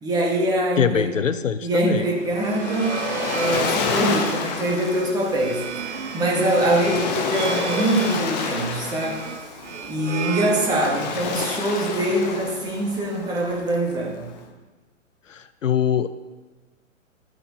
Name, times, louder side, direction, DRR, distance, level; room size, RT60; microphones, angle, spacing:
voice 1, 0.0-1.1 1.6-9.3 9.9-14.3, right 1 dB, 10° right, -2 dB, 1.5 m, -24 dB
voice 2, 0.8-2.1 15.3-16.1, left 8 dB, 70° left, 13 dB, 0.6 m, -23 dB
Waves surf, 2.0-14.4, left 6 dB, 30° left, 1.0 m, -30 dB
sound 1, 2.3-11.3, right 8 dB, 60° right, 0.6 m, -33 dB
14.0 x 8.9 x 2.8 m, 1.2 s
figure-of-eight pair, 125°, 39 cm